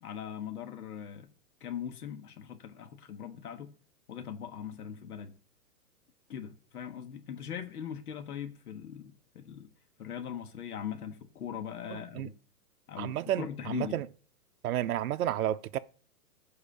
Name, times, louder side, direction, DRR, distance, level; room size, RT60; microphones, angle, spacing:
voice 1, 0.0-1.3 1.6-3.7 4.1-5.3 6.3-9.7 10.0-12.3 12.9-14.0, left 8 dB, 70° left, 1.6 m, -40 dB
voice 2, 11.9-12.3 13.0-14.1 14.6-15.8, right 12 dB, 65° right, 0.7 m, -31 dB
10.5 x 4.8 x 6.9 m
hypercardioid pair, 150°, 47 cm